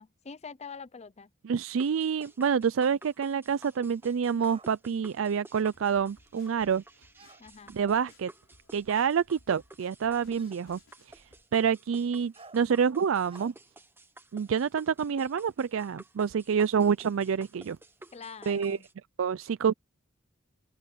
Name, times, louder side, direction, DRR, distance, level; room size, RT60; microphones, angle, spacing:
voice 1, 0.0-1.3 7.4-7.7 18.1-18.9, left 5 dB, 35° left, 0.6 m, -45 dB
voice 2, 1.4-6.8 7.7-8.3 8.7-10.8 11.1-11.2 11.5-13.5 14.3-17.8 18.5-18.8 19.2-19.7, right 7 dB, 70° right, 0.4 m, -27 dB
sound 1, 1.8-18.9, right 2 dB, 10° right, 1.2 m, -53 dB
sound 2, 4.4-4.7 7.1-7.4 8.7-8.8 10.4-10.6 12.3-12.6 13.3-13.5, right 3 dB, 30° right, 4.9 m, -52 dB
sound 3, 5.5-11.4, left 2 dB, 75° left, 3.8 m, -62 dB
open air
head